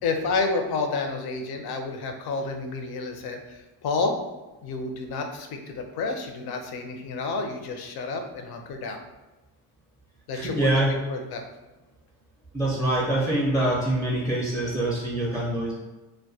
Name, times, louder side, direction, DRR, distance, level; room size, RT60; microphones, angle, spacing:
voice 1, 0.0-4.1 4.6-9.0 10.3-10.7 11.1-11.5, left 3 dB, 55° left, 4 dB, 0.5 m, -30 dB
voice 2, 10.3-11.0 12.5-15.7, right 1 dB, ahead, -6 dB, 0.4 m, -25 dB
2.2 x 2.1 x 2.6 m, 1.1 s
cardioid pair, 105°, 48 cm